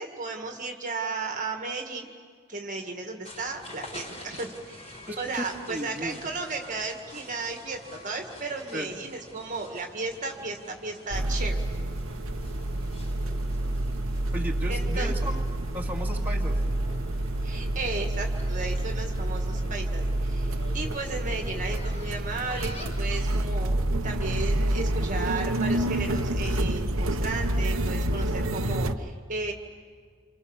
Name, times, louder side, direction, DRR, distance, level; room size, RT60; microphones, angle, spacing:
voice 1, 0.0-2.1 2.5-11.6 14.7-15.1 17.4-29.5, right 3 dB, 35° right, 3 dB, 1.9 m, -35 dB
sound 1, 3.2-23.1, left 1 dB, 30° left, 4.5 m, -47 dB
voice 2, 5.1-6.2 8.7-9.0 14.3-15.4 15.7-16.6, equal, 10° right, -2 dB, 2.3 m, -35 dB
sound 2, 11.1-28.9, right 1 dB, 65° right, 1.2 m, -28 dB
28.5 x 27.5 x 7.3 m, 2.1 s
head